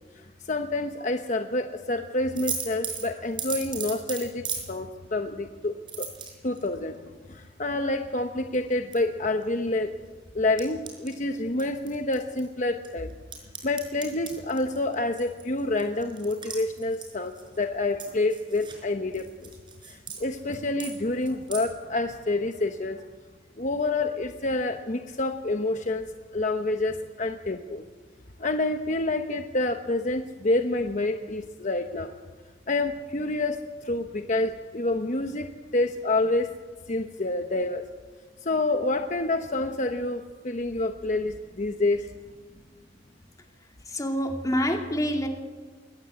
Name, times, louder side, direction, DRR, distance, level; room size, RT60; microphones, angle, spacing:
voice 1, 0.5-6.1 6.4-7.0 7.3-10.0 10.3-13.1 13.6-19.5 19.8-23.0 23.6-27.8 28.4-32.1 32.7-36.6 36.9-37.9 38.4-42.1, left 2 dB, 40° left, 6 dB, 1.0 m, -28 dB
sound 1, 2.3-4.7 5.9-6.7 8.5-9.0 9.4-9.5 10.6-11.2 11.6-12.5 12.8-17.6 18.0-18.8 19.1-20.2 20.5-21.0 21.2-21.7, right 6 dB, 25° right, 5.1 m, -36 dB
voice 2, 43.9-45.3, equal, 20° left, 3 dB, 2.5 m, -26 dB
22.0 x 19.0 x 8.5 m, 1.4 s
head